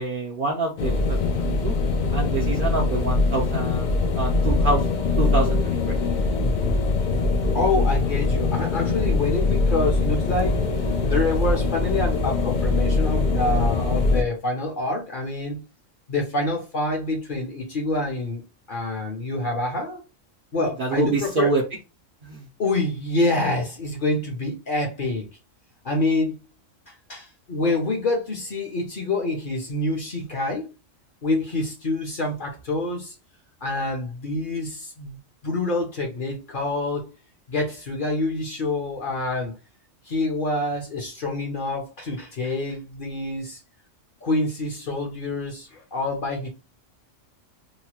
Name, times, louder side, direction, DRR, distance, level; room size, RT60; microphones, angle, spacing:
voice 1, 0.0-1.7 2.1-4.8 5.2-5.9 20.6-21.6 22.2-22.4, right 3 dB, 60° right, 0.6 m, -26 dB
sound 1, 0.8-14.2, left 3 dB, 65° left, 0.4 m, -22 dB
voice 2, 7.5-10.6 11.0-15.6 16.1-18.4 18.7-20.0 20.5-21.5 22.6-25.3 25.8-26.4 27.1-30.7 31.2-33.1 33.6-35.2 35.4-37.1 37.5-39.5 40.1-43.6 44.2-46.5, left 2 dB, 45° left, 0.8 m, -26 dB
3.0 x 2.1 x 2.9 m
omnidirectional pair, 1.3 m